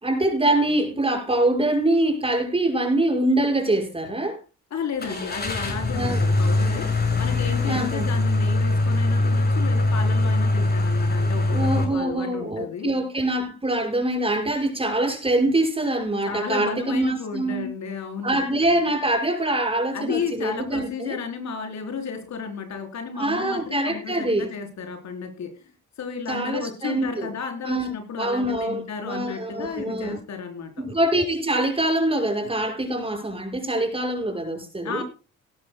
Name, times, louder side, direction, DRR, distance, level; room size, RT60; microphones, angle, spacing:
voice 1, 0.0-4.4 5.9-6.2 7.6-8.0 11.5-17.7 18.2-21.2 23.1-24.5 26.3-27.3 27.6-30.2 30.8-35.0, right 1 dB, 20° right, 5.9 m, -24 dB
voice 2, 4.7-12.9 16.2-18.4 19.9-25.7 26.0-30.8 34.8-35.0, left 6 dB, 65° left, 4.3 m, -33 dB
Car / Engine starting, 5.0-11.8, left 2 dB, 30° left, 6.8 m, -22 dB
18.5 x 12.0 x 2.3 m
cardioid pair, 90°, 30 cm